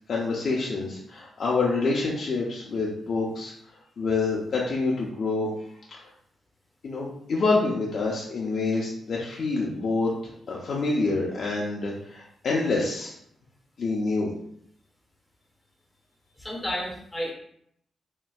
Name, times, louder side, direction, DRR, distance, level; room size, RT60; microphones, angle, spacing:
voice 1, 0.1-3.5 4.0-5.5 5.9-6.1 6.8-13.1 13.8-14.3, left 3 dB, 50° left, -4 dB, 0.6 m, -27 dB
voice 2, 16.4-17.3, equal, 10° left, -2 dB, 1.0 m, -31 dB
4.2 x 3.7 x 2.3 m, 0.70 s
wide cardioid pair, 160°, 0 cm